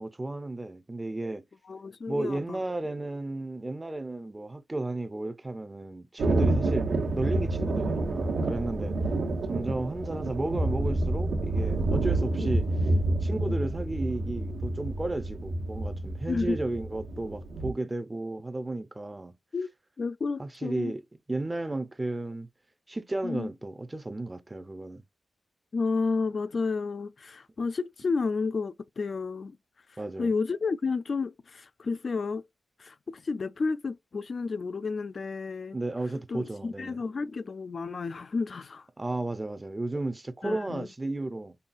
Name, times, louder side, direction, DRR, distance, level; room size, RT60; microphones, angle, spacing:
voice 1, 0.0-1.4 2.1-6.9 7.1-9.0 9.5-12.7 13.2-19.4 20.4-21.0 21.3-22.5 22.9-25.0 30.0-30.3 35.7-37.0 39.0-41.6, right 2 dB, 15° right, 0.5 m, -33 dB
voice 2, 1.7-2.6 12.4-12.6 12.9-13.0 13.5-13.6 16.3-16.6 19.5-19.7 20.0-20.9 23.2-23.5 25.7-29.6 29.9-32.4 32.8-35.8 36.3-38.9 40.4-40.9, left 4 dB, 45° left, 0.3 m, -31 dB
Thunder, 6.2-17.7, right 2 dB, 90° right, 1.1 m, -28 dB
5.5 x 2.3 x 2.5 m
wide cardioid pair, 130°, 0 cm